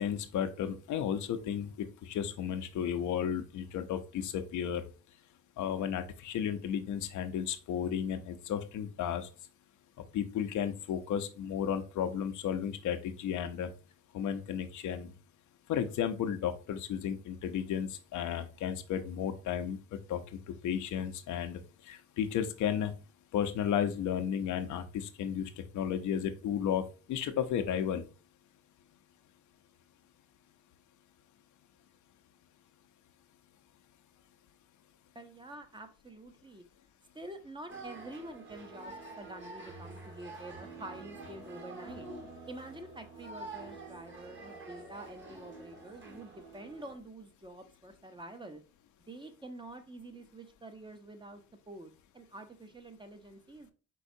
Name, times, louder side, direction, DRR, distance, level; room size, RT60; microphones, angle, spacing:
voice 1, 0.0-4.8 5.6-9.3 10.1-13.7 14.1-15.1 15.7-21.6 21.9-22.9 23.3-26.8 27.1-28.0, left 9 dB, 75° left, 8 dB, 0.7 m, -33 dB
voice 2, 35.1-36.6 37.1-42.1 42.5-48.6 49.1-53.7, right 1 dB, 15° right, 7 dB, 0.7 m, -47 dB
sound 1, 37.7-47.0, right 3 dB, 40° right, 1.5 m, -47 dB
4.6 x 4.2 x 2.7 m, 0.34 s
cardioid pair, 90°, 30 cm